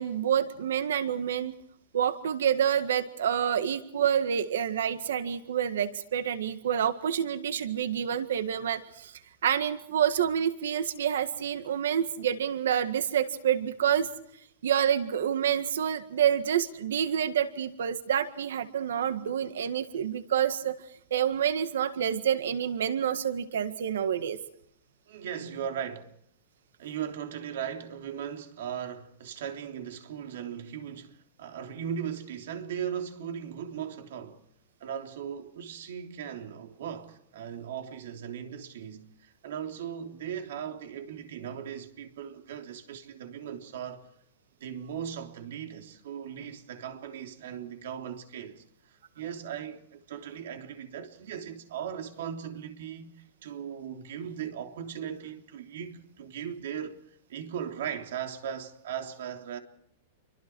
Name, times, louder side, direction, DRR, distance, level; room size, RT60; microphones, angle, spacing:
voice 1, 0.0-1.6 1.9-9.1 9.4-14.1 14.6-20.8 21.1-24.4, right 9 dB, 85° right, 1.8 m, -28 dB
voice 2, 25.1-26.1 26.8-34.4 34.8-44.1 44.6-59.6, right 8 dB, 65° right, 3.3 m, -38 dB
29.0 x 24.5 x 4.7 m
supercardioid pair, 170°, 0 cm